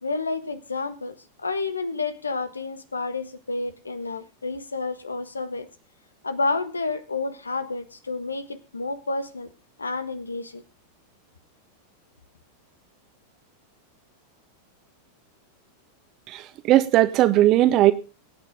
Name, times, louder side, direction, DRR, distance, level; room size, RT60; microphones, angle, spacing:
voice 1, 0.0-5.7 6.2-9.5 9.8-10.6, left 3 dB, 75° left, 1.4 m, -30 dB
voice 2, 16.3-17.9, right 14 dB, 35° right, 1.5 m, -18 dB
23.5 x 9.2 x 3.7 m
figure-of-eight pair, 90°, 0 cm